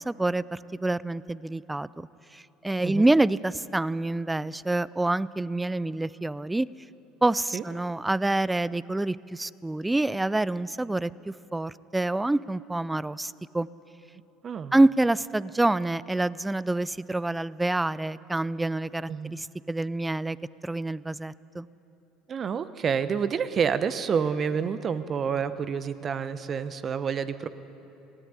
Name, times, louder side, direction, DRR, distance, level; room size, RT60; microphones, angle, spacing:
voice 1, 0.0-2.1 2.3-6.7 7.2-13.7 14.7-20.4 20.6-21.7, right 2 dB, 10° right, 20 dB, 0.4 m, -27 dB
voice 2, 14.4-14.8 19.1-19.4 22.3-27.5, right 6 dB, 40° right, 13 dB, 1.0 m, -28 dB
19.0 x 16.5 x 9.6 m, 3.0 s
hypercardioid pair, 65°, 0 cm